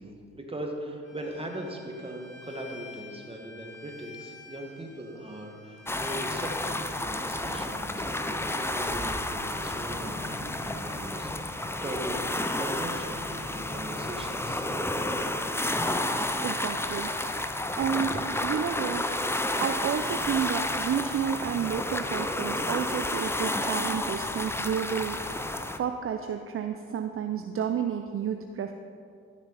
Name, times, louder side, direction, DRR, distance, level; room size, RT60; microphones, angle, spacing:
voice 1, 0.0-14.7, right 1 dB, 20° right, 1 dB, 1.8 m, -39 dB
Bowed string instrument, 1.0-7.0, left 4 dB, 35° left, 2.1 m, -49 dB
sound 1, 5.9-25.8, left 1 dB, 10° left, 0.6 m, -31 dB
voice 2, 16.4-17.4 17.8-28.7, right 8 dB, 45° right, 6 dB, 0.6 m, -31 dB
13.0 x 6.2 x 4.2 m, 2.4 s
supercardioid pair, 60°, 31 cm